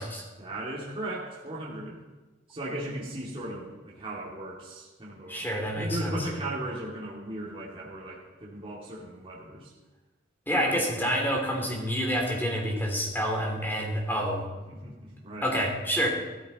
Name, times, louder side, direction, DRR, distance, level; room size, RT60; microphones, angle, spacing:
voice 1, 0.4-2.0 2.5-9.7 10.5-10.9 14.7-15.6, right 1 dB, 30° right, -5 dB, 2.3 m, -37 dB
voice 2, 5.3-6.3 10.5-14.5 15.4-16.1, equal, 10° left, 0 dB, 2.8 m, -28 dB
15.5 x 13.5 x 4.1 m, 1.2 s
head